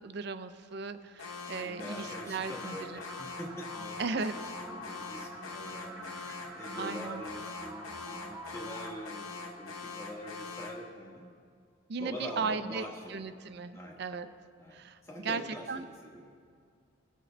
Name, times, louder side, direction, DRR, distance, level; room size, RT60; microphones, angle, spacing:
voice 1, 0.0-3.0 4.0-4.4 6.8-7.2 11.9-14.3 14.7-15.4 15.7-15.8, right 4 dB, 50° right, 11 dB, 0.4 m, -36 dB
Alarm, 1.2-10.9, left 4 dB, 90° left, 0.9 m, -43 dB
voice 2, 1.6-11.3 12.0-13.2 13.7-14.0 14.6-16.3, equal, 15° left, -1 dB, 1.1 m, -44 dB
sound 1, 2.1-10.1, right 1 dB, 5° right, 0.9 m, -48 dB
19.0 x 6.4 x 3.3 m, 2.2 s
head